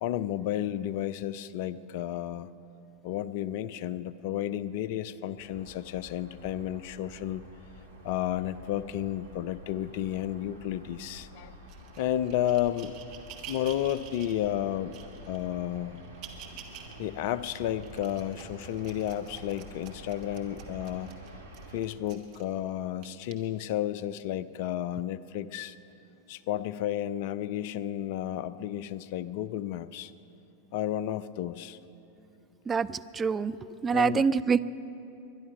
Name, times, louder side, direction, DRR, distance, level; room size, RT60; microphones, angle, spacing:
voice 1, 0.0-2.5 3.0-7.4 8.0-11.5 12.0-12.9 13.5-15.0 15.3-16.1 17.0-21.1 21.7-25.8 26.3-30.1 30.7-31.8 33.9-34.3, left 11 dB, 50° left, 17 dB, 0.4 m, -32 dB
sound 1, 5.4-21.8, equal, 75° right, 1.6 m, -49 dB
sound 2, 11.7-14.4 14.9-15.4 15.9-16.9 17.4-22.5 23.0-23.3 24.1-24.2, right 9 dB, 40° right, 1.6 m, -48 dB
voice 2, 32.7-33.6 33.8-34.6, right 6 dB, 20° right, 12 dB, 0.3 m, -25 dB
21.5 x 11.0 x 5.5 m, 2.9 s
figure-of-eight pair, 90°, 0 cm